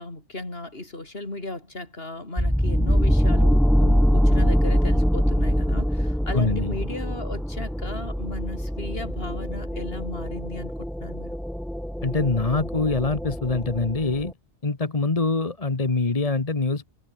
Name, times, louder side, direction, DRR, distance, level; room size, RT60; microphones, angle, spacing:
voice 1, 0.0-11.4, left 2 dB, 55° left, 4.7 m, -36 dB
sound 1, 2.4-14.3, equal, ahead, 0.5 m, -23 dB
voice 2, 6.3-6.7 12.0-14.3 14.6-16.9, left 3 dB, 30° left, 1.5 m, -24 dB
omnidirectional pair, 1.2 m